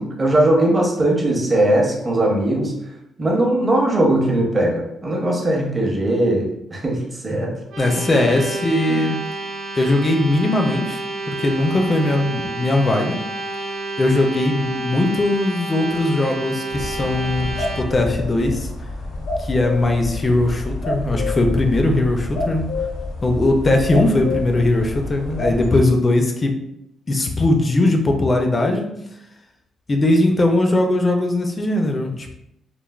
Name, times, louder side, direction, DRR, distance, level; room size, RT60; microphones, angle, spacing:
voice 1, 0.0-2.7 3.2-7.5 8.9-9.0, right 1 dB, 25° right, -1 dB, 0.6 m, -19 dB
sound 1, 7.7-17.8, right 2 dB, 80° right, 0.6 m, -30 dB
voice 2, 7.8-9.2 9.8-11.0 11.3-13.2 14.0-18.7 19.4-22.7 23.2-26.5 27.1-28.9 29.9-32.4, left 2 dB, 30° left, 3 dB, 0.3 m, -19 dB
sound 2, 16.7-25.7, left 2 dB, 85° left, 0.6 m, -28 dB
3.1 x 2.1 x 2.3 m, 0.78 s
cardioid pair, 130°, 0 cm